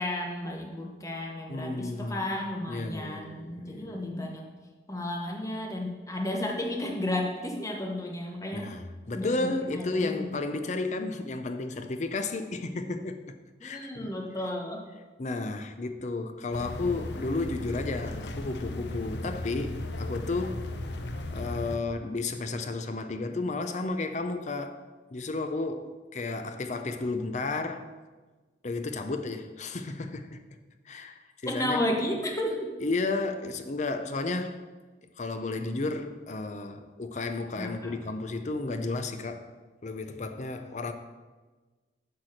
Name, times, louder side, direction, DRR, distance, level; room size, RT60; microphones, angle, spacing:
voice 1, 0.0-4.4 4.9-8.7 9.1-10.3 13.6-14.8 31.5-32.7 37.6-37.9, left 1 dB, 20° left, 1.0 m, -33 dB
voice 2, 1.5-2.3 2.7-4.1 8.5-13.2 13.6-14.1 15.2-20.7 21.3-24.8 25.1-27.9 28.6-30.4 30.9-31.8 32.8-34.6 35.2-39.5 39.8-40.9, left 3 dB, 40° left, 0.6 m, -33 dB
sound 1, 16.5-21.8, left 1 dB, 75° left, 0.7 m, -36 dB
8.4 x 4.6 x 6.5 m
head